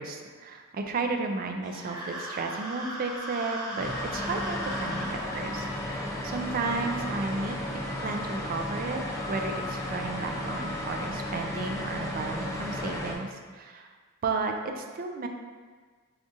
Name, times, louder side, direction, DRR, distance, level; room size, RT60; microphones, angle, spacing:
voice 1, 0.0-7.6 8.0-9.0 9.3-13.9 14.2-15.3, right 3 dB, 40° right, 4 dB, 0.3 m, -33 dB
sound 1, 1.6-5.1, right 1 dB, 20° right, 0.9 m, -37 dB
sound 2, 3.8-13.1, left 1 dB, 15° left, 0.5 m, -34 dB
4.9 x 2.4 x 2.6 m, 1.5 s
head